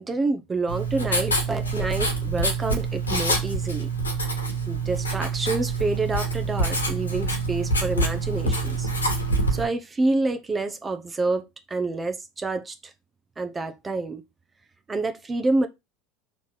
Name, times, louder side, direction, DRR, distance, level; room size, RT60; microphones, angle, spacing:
voice 1, 0.0-3.9 4.7-8.9 9.5-12.9 13.4-14.2 14.9-15.7, right 3 dB, 20° right, 0.9 m, -28 dB
Writing, 0.7-9.6, right 2 dB, 90° left, 1.9 m, -26 dB
5.8 x 4.2 x 6.3 m
figure-of-eight pair, 75°, 0 cm